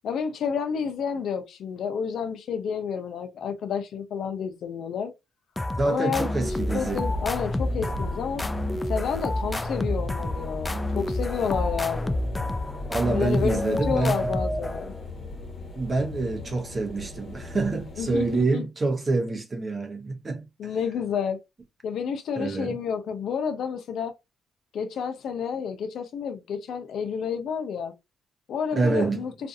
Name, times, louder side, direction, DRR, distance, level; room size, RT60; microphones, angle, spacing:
voice 1, 0.0-5.1 5.8-6.3 6.7-8.4 8.9-12.2 13.1-14.9 18.0-18.6 20.6-21.4 21.8-24.1 24.7-27.9 28.5-29.3, left 6 dB, 70° left, 0.6 m, -30 dB
sound 1, 5.6-15.1, left 1 dB, 15° left, 0.3 m, -29 dB
voice 2, 5.8-7.0 12.9-14.3 15.7-20.5 22.4-22.8 28.7-29.2, right 3 dB, 30° right, 0.7 m, -26 dB
sound 2, 6.4-18.4, left 3 dB, 35° left, 1.2 m, -37 dB
2.5 x 2.4 x 2.6 m
cardioid pair, 90°, 0 cm